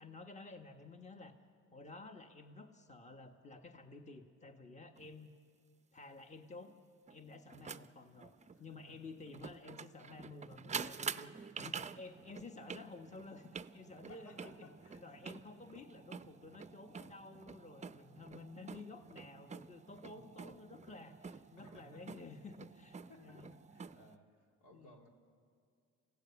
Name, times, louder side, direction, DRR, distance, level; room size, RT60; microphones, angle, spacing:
voice 1, 0.0-1.3 1.7-5.3 5.9-6.7 7.1-8.3 8.6-11.3 11.6-23.5 24.7-25.0, left 3 dB, 25° left, 6 dB, 1.4 m, -52 dB
sound 1, 5.0-5.1 7.1-24.2, right 5 dB, 25° right, 0.5 m, -48 dB
voice 2, 14.1-15.0 20.1-20.2 21.6-22.2 23.1-25.1, left 1 dB, 85° left, 2 dB, 2.8 m, -60 dB
29.0 x 15.5 x 7.0 m, 2.3 s
cardioid pair, 90°, 30 cm